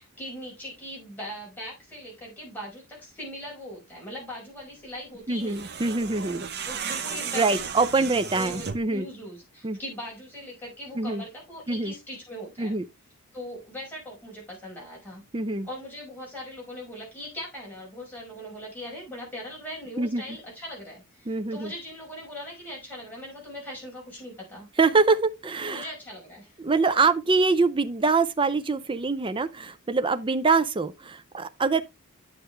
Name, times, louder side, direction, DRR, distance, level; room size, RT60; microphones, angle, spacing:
voice 1, 0.0-5.7 6.7-12.7 13.3-15.2 15.6-24.7 25.7-26.5, left 1 dB, 10° left, 5.5 m, -40 dB
voice 2, 5.3-6.4 7.3-9.1 9.6-9.8 10.9-11.2 11.7-11.9 12.6-12.8 15.3-15.7 20.0-20.4 21.3-21.7 24.8-25.9 26.6-31.8, right 4 dB, 20° right, 0.5 m, -24 dB
sound 1, 5.3-9.0, right 7 dB, 50° right, 0.8 m, -34 dB
9.7 x 6.7 x 3.2 m
head